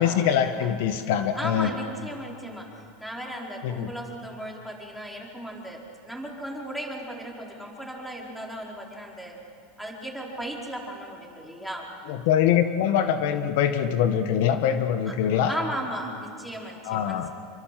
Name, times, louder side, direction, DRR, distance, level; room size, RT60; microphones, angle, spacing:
voice 1, 0.0-1.7 3.6-3.9 12.1-15.5 16.8-17.3, left 9 dB, 70° left, 8 dB, 1.5 m, -23 dB
voice 2, 1.3-9.4 9.8-11.9 15.1-15.2 15.5-17.3, equal, ahead, -1 dB, 4.5 m, -36 dB
27.5 x 24.5 x 7.7 m, 2.5 s
supercardioid pair, 135°, 0 cm